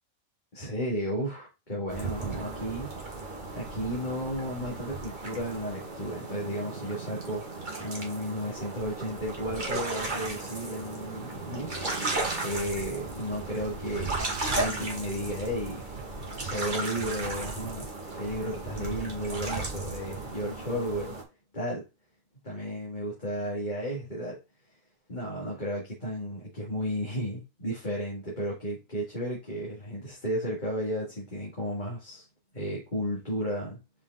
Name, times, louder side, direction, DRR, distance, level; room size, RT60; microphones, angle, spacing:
voice 1, 0.5-11.9 12.4-15.9 16.4-17.9 18.2-21.2 21.5-21.8 22.4-24.4 25.1-32.3 32.5-33.8, equal, 35° left, 2.4 m, -33 dB
sound 1, 1.9-21.2, right 3 dB, 35° right, 1.9 m, -35 dB
5.6 x 5.0 x 4.0 m
omnidirectional pair, 1.5 m